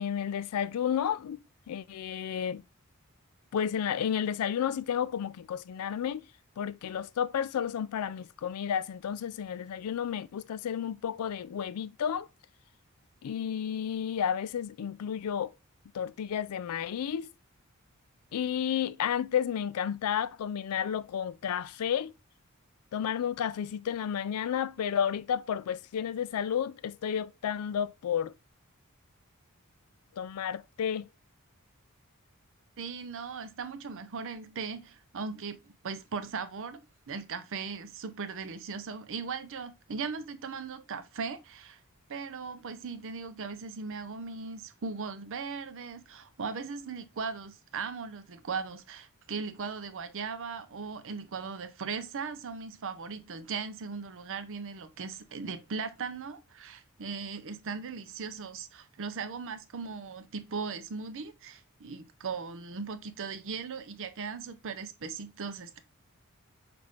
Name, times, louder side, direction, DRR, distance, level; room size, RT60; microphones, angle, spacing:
voice 1, 0.0-1.4 1.7-2.6 3.5-6.3 6.6-12.3 13.2-15.5 15.9-17.3 18.3-22.1 22.9-28.3 30.2-31.1, left 8 dB, 80° left, 0.3 m, -31 dB
voice 2, 32.8-36.8 37.1-41.8 42.1-65.8, right 5 dB, 60° right, 0.6 m, -38 dB
5.8 x 2.6 x 3.1 m
head